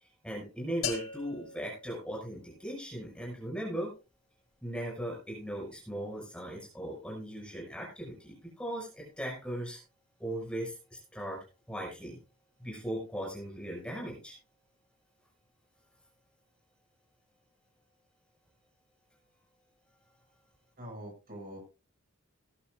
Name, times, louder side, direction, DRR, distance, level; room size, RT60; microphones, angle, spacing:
voice 1, 0.2-3.9 4.6-9.8 10.2-11.4 11.7-12.2 12.6-14.3, right 1 dB, 5° left, -2 dB, 6.0 m, -38 dB
sound 1, 0.8-2.8, left 6 dB, 75° left, 4.5 m, -40 dB
voice 2, 20.8-21.6, equal, 40° right, 0 dB, 6.7 m, -44 dB
19.0 x 11.5 x 2.5 m, 0.31 s
head